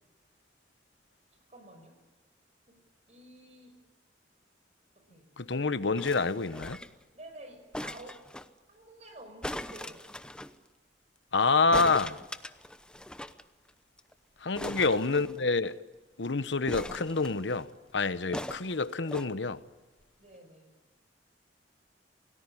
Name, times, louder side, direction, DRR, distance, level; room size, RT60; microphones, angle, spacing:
voice 1, 1.5-2.0 2.7-2.8 3.1-3.8 5.0-5.3 7.1-8.3 8.7-10.0 14.5-15.4 20.2-20.7, right 1 dB, 35° right, 5.6 m, -51 dB
voice 2, 5.4-6.8 11.3-12.2 14.4-15.8 16.2-17.7 17.9-19.6, left 4 dB, 75° left, 1.1 m, -27 dB
sound 1, 6.0-7.0 7.7-8.5 9.4-10.5 11.7-13.4 13.7-13.8 14.0-14.1 14.6-15.7 16.7-17.6 18.3-19.3 20.0-20.1, left 1 dB, 5° left, 0.8 m, -40 dB
28.0 x 18.5 x 9.9 m
head